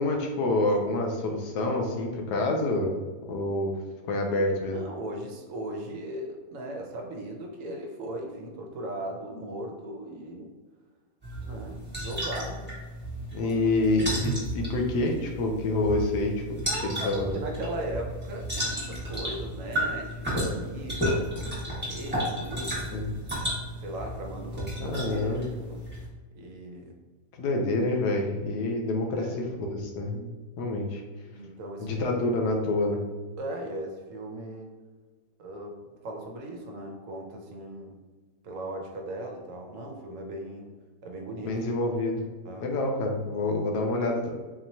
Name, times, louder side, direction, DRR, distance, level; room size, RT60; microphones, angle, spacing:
voice 1, 0.0-3.0 3.3-3.7 4.1-4.8 13.3-16.3 16.8-17.3 22.9-23.1 24.8-25.5 27.4-29.3 29.6-30.3 30.6-31.0 31.8-33.0 41.4-42.3 42.6-44.3, left 2 dB, 75° left, 2 dB, 1.2 m, -27 dB
voice 2, 4.7-10.5 11.4-12.8 13.4-13.9 16.7-23.0 23.8-25.8 26.4-27.0 29.1-29.4 31.3-32.0 33.4-34.7 35.4-38.0 38.4-40.7 41.0-41.5 42.4-42.7, right 1 dB, 65° right, 2 dB, 0.9 m, -38 dB
sound 1, 11.2-26.1, equal, 5° right, 1.3 m, -33 dB
4.1 x 3.0 x 2.7 m, 1.3 s
omnidirectional pair, 1.8 m